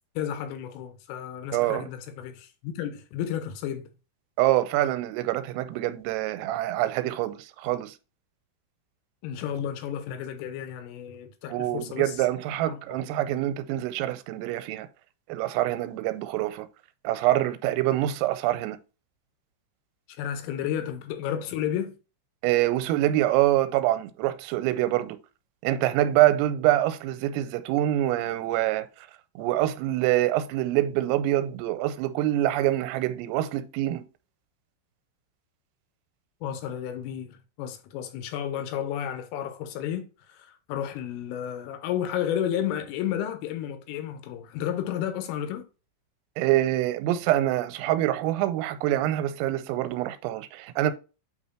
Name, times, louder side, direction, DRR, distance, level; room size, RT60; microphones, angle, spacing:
voice 1, 0.2-3.9 9.2-12.2 12.7-13.0 20.2-21.9 36.4-45.7, left 10 dB, 85° left, 3.4 m, -32 dB
voice 2, 1.5-1.9 4.4-7.9 11.5-14.9 15.3-16.7 17.0-18.8 22.4-25.2 25.6-28.9 29.4-34.0 46.4-50.9, right 14 dB, 85° right, 3.3 m, -25 dB
8.6 x 3.2 x 4.3 m
omnidirectional pair, 5.9 m